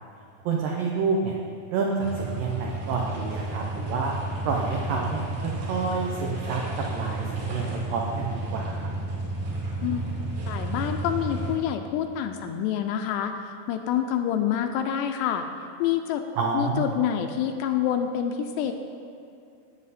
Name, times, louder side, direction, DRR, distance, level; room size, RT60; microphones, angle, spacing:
voice 1, 0.5-1.4 1.7-4.1 4.5-6.6 6.9-8.9 16.4-16.9, right 4 dB, 85° right, 0 dB, 1.9 m, -28 dB
sound 1, 2.0-11.5, right 2 dB, 55° right, 3.6 m, -32 dB
voice 2, 10.5-15.5 15.8-16.2 16.5-18.7, left 9 dB, 80° left, 6 dB, 2.6 m, -27 dB
17.5 x 7.7 x 4.2 m, 2.5 s
omnidirectional pair, 5.2 m